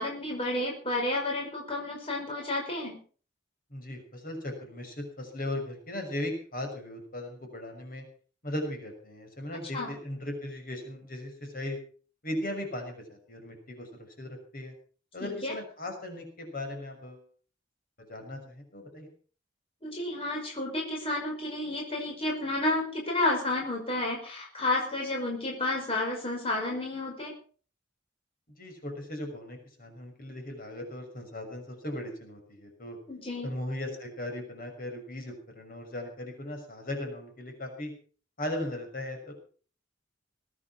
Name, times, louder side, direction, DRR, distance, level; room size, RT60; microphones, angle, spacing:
voice 1, 0.0-3.0 9.7-9.9 15.2-15.5 19.8-27.3 33.1-33.5, left 2 dB, 30° left, -1 dB, 5.6 m, -31 dB
voice 2, 3.7-8.0 8.4-11.8 12.2-13.9 14.2-14.7 15.1-17.2 18.1-19.1 28.6-33.0 33.4-37.9 38.4-39.3, left 1 dB, 50° left, 4 dB, 6.1 m, -37 dB
21.5 x 9.7 x 6.2 m, 0.41 s
head